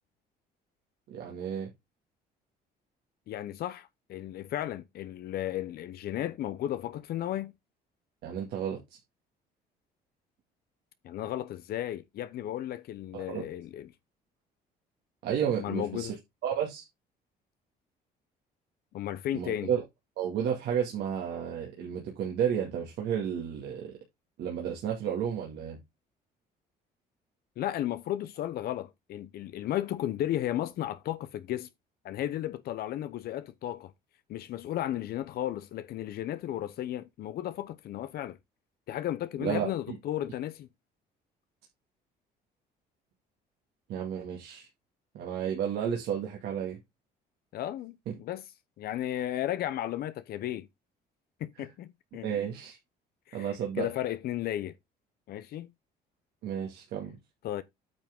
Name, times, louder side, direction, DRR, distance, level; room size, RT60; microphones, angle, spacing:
voice 1, 1.1-1.7 8.2-9.0 13.1-13.4 15.2-16.1 16.4-16.8 19.3-19.8 20.2-24.0 24.4-25.8 39.4-39.7 43.9-44.7 45.1-46.8 48.1-48.2 51.6-51.7 52.2-52.8 53.3-53.9 56.4-57.2, right 8 dB, 75° right, 2.2 m, -32 dB
voice 2, 3.3-7.5 11.0-13.9 15.6-16.2 18.9-19.7 27.6-31.7 32.0-33.9 34.3-38.4 38.9-40.7 47.5-48.4 48.8-50.7 51.4-52.3 53.3-54.8 55.3-55.7 57.4-57.6, left 12 dB, 65° left, 0.8 m, -34 dB
9.0 x 5.9 x 3.6 m
cardioid pair, 110°, 17 cm